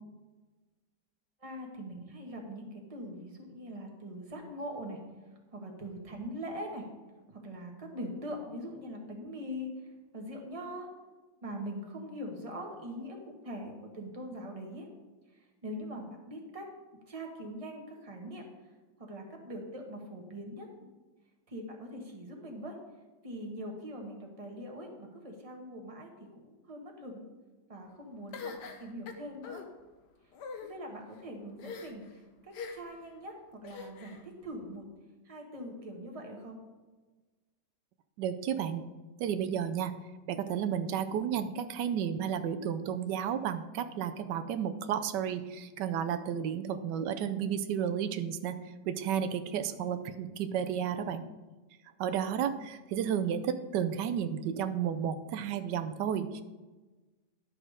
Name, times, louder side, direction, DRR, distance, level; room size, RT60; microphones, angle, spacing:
voice 1, 1.4-5.0 5.5-6.9 7.3-9.7 10.1-10.9 11.4-14.9 15.3-16.7 17.1-18.4 19.0-20.7 21.5-22.8 23.2-27.3 27.7-28.5 28.8-29.6 30.6-34.8 35.2-36.6, equal, 20° right, 1 dB, 1.4 m, -42 dB
sound 1, 28.3-29.6 30.3-30.7 31.6-32.1 32.5-33.0 33.6-34.2, left 5 dB, 75° left, 1.5 m, -43 dB
voice 2, 38.2-38.8 39.2-40.0 40.3-51.3 52.0-56.4, right 8 dB, 90° right, 10 dB, 1.2 m, -32 dB
11.0 x 6.4 x 5.0 m, 1.2 s
omnidirectional pair, 1.8 m